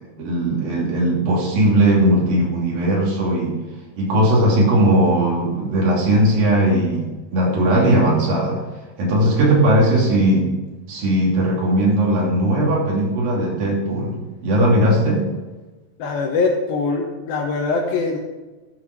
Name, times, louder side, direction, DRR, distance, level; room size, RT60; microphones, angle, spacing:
voice 1, 0.2-3.5 4.0-8.6 9.0-10.5 10.9-14.2 14.4-15.2, right 1 dB, 75° right, -4 dB, 4.6 m, -18 dB
voice 2, 16.0-18.2, left 4 dB, 80° left, -1 dB, 2.9 m, -22 dB
12.5 x 6.8 x 6.0 m, 1.2 s
omnidirectional pair, 4.1 m